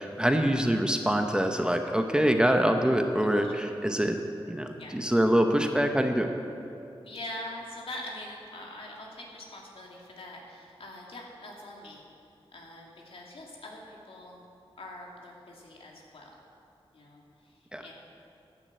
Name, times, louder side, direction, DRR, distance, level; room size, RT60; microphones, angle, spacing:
voice 1, 0.0-4.2 4.5-6.3 17.7-17.8, equal, 10° right, 5 dB, 0.8 m, -25 dB
voice 2, 3.2-3.6 4.8-5.0 7.0-12.0 12.5-14.4 14.8-16.3 16.9-17.9, left 1 dB, 75° left, -2 dB, 2.5 m, -43 dB
12.0 x 9.8 x 7.7 m, 2.7 s
wide cardioid pair, 115°, 10 cm